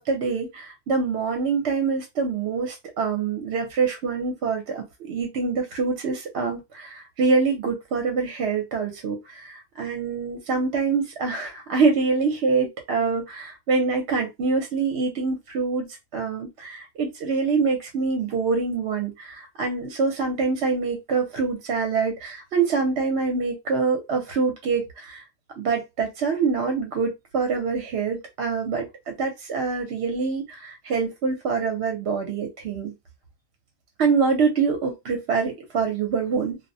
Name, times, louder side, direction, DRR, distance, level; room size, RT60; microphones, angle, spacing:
voice 1, 0.0-15.9 16.1-25.2 25.6-32.9 34.0-36.6, right 4 dB, 75° right, 0.9 m, -25 dB
2.3 x 2.0 x 2.6 m
omnidirectional pair, 1.1 m